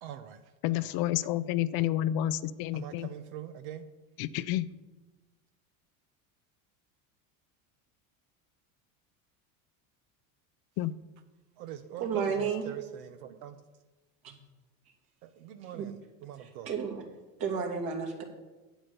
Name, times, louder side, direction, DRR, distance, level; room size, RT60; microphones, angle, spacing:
voice 1, 0.0-0.5 0.8-1.0 2.7-3.9 11.6-13.6 15.2-16.7, right 10 dB, 75° right, 8 dB, 0.8 m, -44 dB
voice 2, 0.6-3.1 4.2-4.7 10.8-11.0, left 13 dB, 55° left, 15 dB, 0.6 m, -30 dB
voice 3, 12.0-12.6 14.2-14.3 15.7-15.9 16.7-17.0 17.4-18.2, right 6 dB, 55° right, 2 dB, 2.8 m, -31 dB
9.0 x 8.2 x 6.8 m, 1.1 s
supercardioid pair, 95°, 43 cm